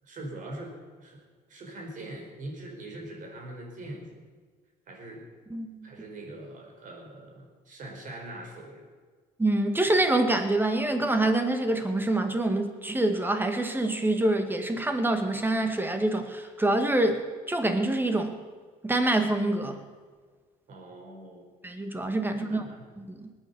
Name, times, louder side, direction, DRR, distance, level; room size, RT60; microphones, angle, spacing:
voice 1, 0.0-1.2 1.5-4.1 4.9-5.3 5.8-8.9 20.7-21.5 22.3-22.8, right 1 dB, 50° right, 1 dB, 4.9 m, -42 dB
voice 2, 5.5-5.9 9.4-18.4 18.8-19.8 21.6-22.6 23.0-23.3, right 2 dB, 10° right, 6 dB, 2.0 m, -26 dB
20.0 x 9.4 x 7.1 m, 1.5 s
cardioid pair, 110°, 17 cm